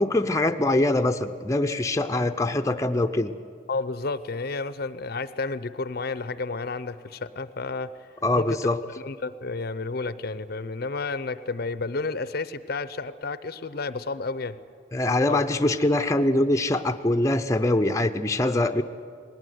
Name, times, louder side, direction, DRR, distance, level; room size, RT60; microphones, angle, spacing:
voice 1, 0.0-3.3 8.2-8.8 14.9-18.8, left 1 dB, 15° left, 7 dB, 0.6 m, -23 dB
voice 2, 3.7-7.9 8.3-8.6 9.0-14.6 15.3-15.4, left 3 dB, 50° left, 14 dB, 0.6 m, -31 dB
20.0 x 18.0 x 9.3 m, 2.2 s
head